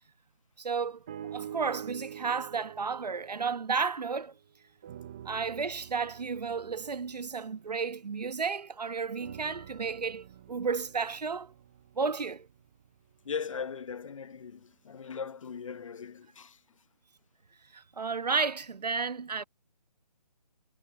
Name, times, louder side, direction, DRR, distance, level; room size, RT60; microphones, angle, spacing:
voice 1, 0.6-1.0 1.3-4.3 5.2-11.5 11.9-12.5 17.7-19.4, right 5 dB, 70° right, 1.2 m, -32 dB
sound 1, 1.1-4.4 4.8-8.6 9.2-13.4 14.1-14.2, right 10 dB, 10° right, 0.4 m, -47 dB
voice 2, 13.2-16.6, left 6 dB, 50° left, 0.9 m, -39 dB
figure-of-eight pair, 155°, 21 cm